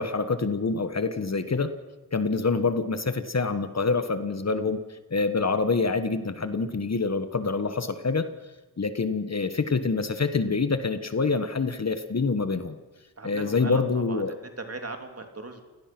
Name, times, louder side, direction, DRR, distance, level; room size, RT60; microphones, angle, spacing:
voice 1, 0.0-1.7 2.1-8.3 8.8-12.7 13.2-14.3, left 4 dB, 40° left, 10 dB, 1.3 m, -26 dB
voice 2, 13.2-15.6, right 2 dB, 40° right, 5 dB, 3.0 m, -38 dB
29.0 x 18.0 x 6.1 m, 1.3 s
wide cardioid pair, 90°, 39 cm